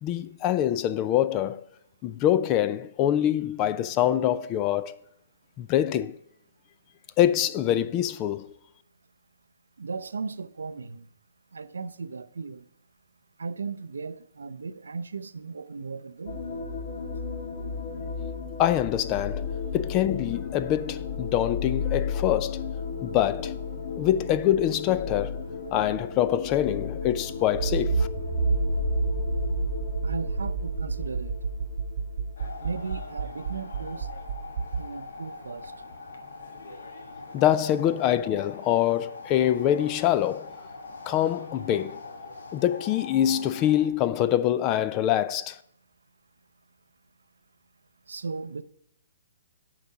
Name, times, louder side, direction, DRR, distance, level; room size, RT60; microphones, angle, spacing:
voice 1, 0.0-1.6 2.0-5.0 5.6-6.2 7.2-8.5 18.6-19.5 19.7-22.6 23.0-23.5 24.0-25.4 25.7-28.1 37.3-40.5 41.1-42.0 42.5-45.6, left 11 dB, 25° left, 0.5 m, -25 dB
voice 2, 9.8-11.1 11.5-12.6 13.4-16.4 30.0-31.4 32.6-34.1 34.8-35.7 48.1-48.6, right 4 dB, 85° right, 0.6 m, -36 dB
sound 1, 16.3-33.8, left 6 dB, 55° left, 1.6 m, -34 dB
Accelerating revving vroom, 27.5-34.8, right 5 dB, 60° right, 0.9 m, -29 dB
sound 2, 32.4-43.9, left 3 dB, 75° left, 1.4 m, -43 dB
8.6 x 4.9 x 5.7 m
hypercardioid pair, 145°, 0 cm